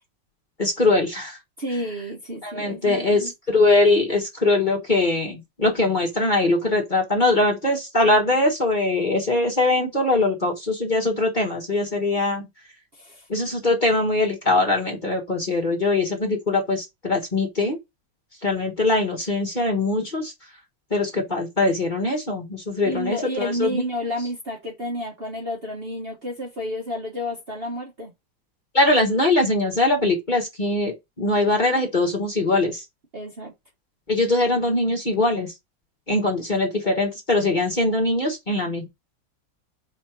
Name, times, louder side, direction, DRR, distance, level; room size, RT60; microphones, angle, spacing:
voice 1, 0.6-1.4 2.4-12.4 13.3-17.8 18.4-20.3 20.9-23.8 28.7-32.8 34.1-35.5 36.1-38.9, left 2 dB, 25° left, 1.5 m, -22 dB
voice 2, 1.6-3.3 12.9-13.3 22.8-28.1 33.1-33.5, equal, 35° right, 1.3 m, -30 dB
5.0 x 4.3 x 5.9 m
omnidirectional pair, 2.0 m